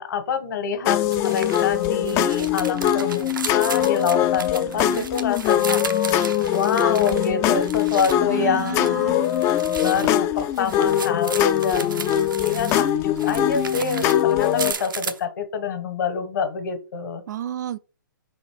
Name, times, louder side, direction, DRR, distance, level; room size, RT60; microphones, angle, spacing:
voice 1, 0.0-5.8 6.5-9.3 9.8-12.0 12.4-17.2, left 6 dB, 65° left, 1.5 m, -26 dB
sound 1, 0.9-14.7, left 11 dB, 25° left, 0.4 m, -22 dB
sound 2, 1.1-8.2 8.5-12.9 13.2-15.2, right 6 dB, 80° right, 0.9 m, -34 dB
voice 2, 4.6-5.1 8.2-9.2 17.3-17.8, right 11 dB, 60° right, 0.5 m, -32 dB
5.5 x 4.3 x 4.7 m
hypercardioid pair, 130°, 11 cm